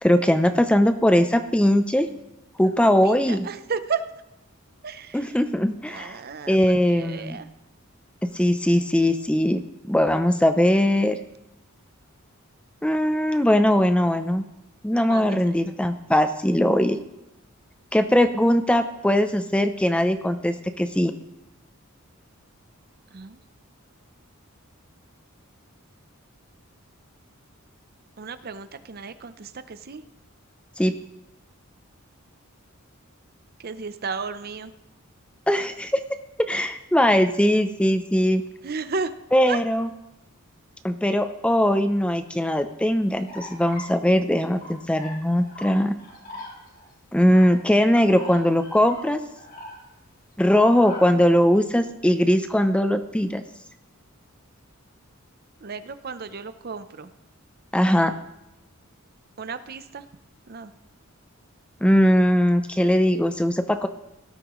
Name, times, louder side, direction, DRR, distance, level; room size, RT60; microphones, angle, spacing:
voice 1, 0.0-2.1 2.6-3.5 5.1-6.2 6.5-7.4 8.2-11.2 12.8-14.4 14.8-17.0 17.9-21.1 30.8-30.9 35.5-36.0 36.4-38.4 39.3-39.9 40.8-46.0 47.1-49.2 50.4-53.4 57.7-58.1 61.8-63.9, equal, 5° left, 9 dB, 0.5 m, -20 dB
voice 2, 2.8-4.0 4.8-5.4 5.9-6.6 6.9-7.5 15.1-15.4 23.1-23.4 28.2-30.0 33.6-34.7 38.6-39.1 39.5-39.6 55.6-57.1 59.4-60.0 60.5-60.7, right 5 dB, 45° right, 12 dB, 0.6 m, -33 dB
sound 1, 43.3-43.9 44.5-45.7 46.0-46.9 47.2-47.5 48.1-50.1 50.4-51.1, left 1 dB, 50° left, 4.0 m, -41 dB
17.5 x 13.0 x 3.1 m, 0.93 s
head